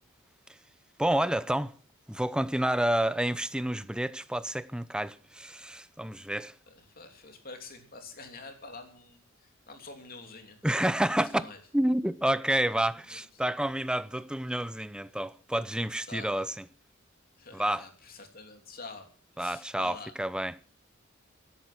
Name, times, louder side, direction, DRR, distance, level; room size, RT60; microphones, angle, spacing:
voice 1, 1.0-1.7 2.1-6.5 10.6-11.5 11.7-16.6 17.5-17.8 19.4-20.5, right 1 dB, 5° right, 0.6 m, -29 dB
voice 2, 6.7-10.6 11.2-11.6 12.8-13.4 16.1-16.5 17.4-19.1 19.3-20.1, left 3 dB, 45° left, 3.2 m, -47 dB
15.0 x 11.5 x 6.0 m
head